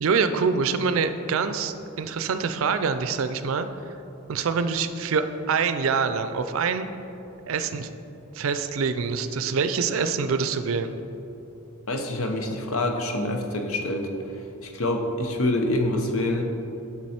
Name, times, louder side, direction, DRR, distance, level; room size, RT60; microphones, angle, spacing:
voice 1, 0.0-3.7 4.3-6.9 7.5-7.9 8.3-10.9, right 5 dB, 70° right, 10 dB, 0.4 m, -25 dB
voice 2, 11.9-14.1 14.6-16.5, left 1 dB, 75° left, 4 dB, 0.8 m, -26 dB
7.5 x 6.0 x 4.3 m, 3.0 s
head